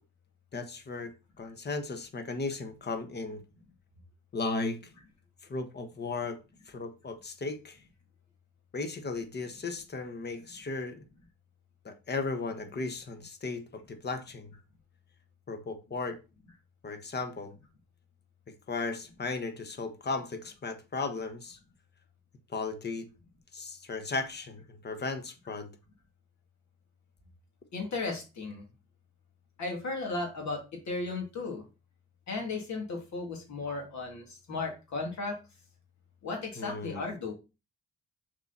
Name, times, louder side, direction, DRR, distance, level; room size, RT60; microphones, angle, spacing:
voice 1, 0.5-1.1 1.4-3.4 4.3-4.8 5.5-6.4 6.7-7.8 8.7-11.0 11.8-14.5 15.5-16.2 16.8-17.5 18.7-21.6 22.5-23.1 23.5-25.7 36.6-37.0, left 3 dB, 35° left, 1.3 m, -36 dB
voice 2, 27.7-28.6 29.6-31.6 32.3-35.4 36.2-37.3, left 3 dB, 65° left, 3.0 m, -35 dB
6.6 x 5.0 x 4.3 m
cardioid pair, 90°, 30 cm